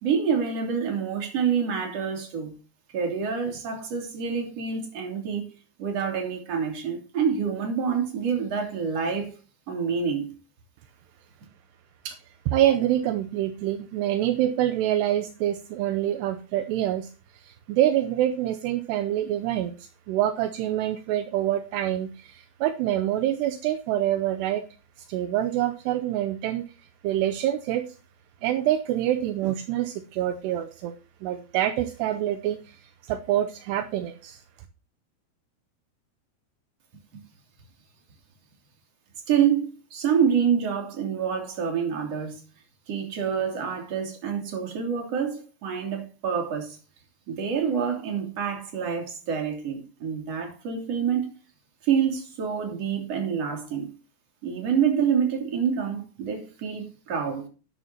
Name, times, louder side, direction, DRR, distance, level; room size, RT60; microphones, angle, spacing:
voice 1, 0.0-2.5 2.9-5.5 5.8-9.4 9.7-10.3 37.1-37.2 39.3-42.4 42.9-46.8 47.3-51.3 51.8-53.9 54.4-57.5, right 7 dB, 40° right, 3.4 m, -27 dB
voice 2, 12.5-24.6 25.0-26.7 27.0-27.9 28.4-30.9 31.2-34.4, right 12 dB, 80° right, 2.7 m, -26 dB
11.5 x 11.5 x 2.9 m
omnidirectional pair, 5.2 m